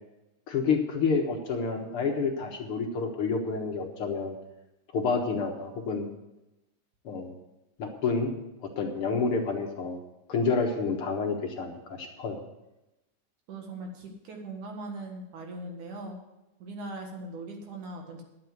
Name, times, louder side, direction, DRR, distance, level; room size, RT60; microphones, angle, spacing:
voice 1, 0.5-4.3 4.9-6.1 7.0-7.3 7.8-8.3 8.8-10.0 10.3-12.4, left 4 dB, 55° left, 2 dB, 1.8 m, -29 dB
voice 2, 13.5-16.2 16.6-18.2, right 2 dB, 65° right, 2 dB, 3.0 m, -40 dB
11.0 x 7.7 x 7.8 m, 0.95 s
omnidirectional pair, 3.8 m